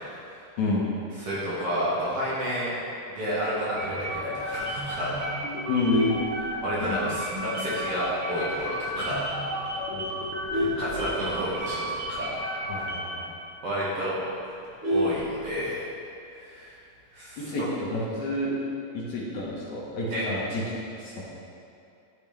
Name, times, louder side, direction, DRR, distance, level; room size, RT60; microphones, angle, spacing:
voice 1, 1.2-2.8 3.1-5.3 6.6-9.3 10.5-12.3 12.7-12.8 13.6-14.1 14.9-15.8 16.4-16.7 17.1-17.5 20.1-20.2, equal, 55° right, -9 dB, 2.3 m, -30 dB
sound 1, 3.7-13.2, equal, 80° right, 1.1 m, -33 dB
Vehicle horn car horn honking, 5.6-7.1 7.5-7.8 8.1-8.2 8.6-8.7 9.0-9.4 9.9-11.8 12.1-12.2 12.5-12.6 13.0-13.1 13.5-13.6 13.8-15.9 17.1-17.5, left 1 dB, 35° right, 1.2 m, -30 dB
voice 2, 5.7-6.1 6.8-7.1 9.9-10.2 12.7-13.3 17.4-18.5 18.9-20.6 21.0-21.2, left 2 dB, 70° left, -5 dB, 2.4 m, -29 dB
12.0 x 4.3 x 3.3 m, 2.6 s
omnidirectional pair, 3.7 m